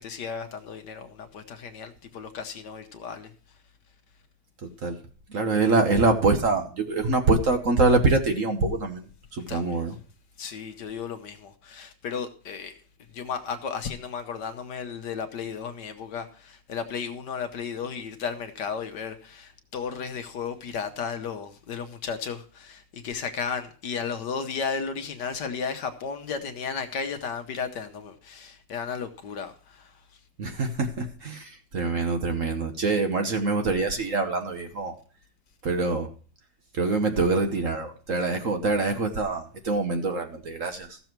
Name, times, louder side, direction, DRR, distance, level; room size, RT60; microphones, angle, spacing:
voice 1, 0.0-3.3 9.5-9.8 10.4-12.7 13.1-29.9, left 6 dB, 65° left, 1.5 m, -34 dB
voice 2, 4.6-5.0 5.3-9.9 30.4-34.9 35.6-36.1 36.7-41.0, right 3 dB, 50° right, 1.3 m, -25 dB
14.5 x 7.0 x 4.5 m
omnidirectional pair, 2.1 m